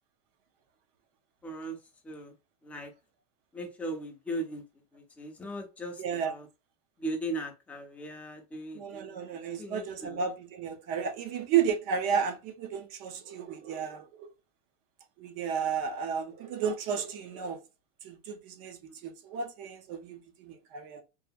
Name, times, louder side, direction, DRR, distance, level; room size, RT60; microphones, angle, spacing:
voice 1, 1.4-1.8 2.0-2.3 2.6-2.9 3.5-6.5 7.0-10.2, right 1 dB, 5° left, 0.4 m, -38 dB
voice 2, 6.0-6.3 8.7-14.3 15.2-17.6 18.0-21.0, right 7 dB, 45° right, 0.5 m, -33 dB
2.8 x 2.6 x 2.2 m
supercardioid pair, 160°, 20 cm